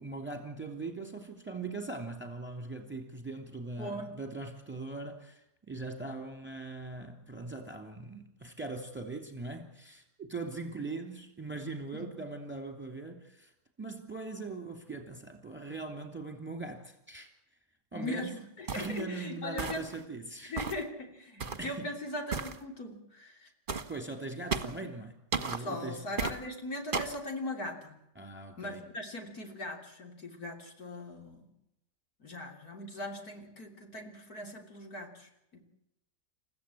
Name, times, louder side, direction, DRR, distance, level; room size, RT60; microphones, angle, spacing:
voice 1, 0.0-13.5 13.8-17.3 17.9-18.3 18.7-20.5 21.6-21.9 23.9-26.0 28.2-28.8, right 3 dB, 5° right, 2.8 m, -41 dB
voice 2, 3.8-4.1 11.9-12.1 17.9-19.8 20.4-23.5 24.8-24.9 25.6-27.9 28.6-31.5 32.2-35.6, left 1 dB, 65° left, 3.8 m, -40 dB
sound 1, 18.7-19.0 19.6-20.0 20.6-20.9 21.4-21.7 22.3-22.6 23.7-23.9 24.5-24.8 25.3-25.6 26.2-26.4 26.9-27.2, right 5 dB, 35° right, 1.4 m, -34 dB
29.5 x 15.0 x 8.5 m
omnidirectional pair, 1.7 m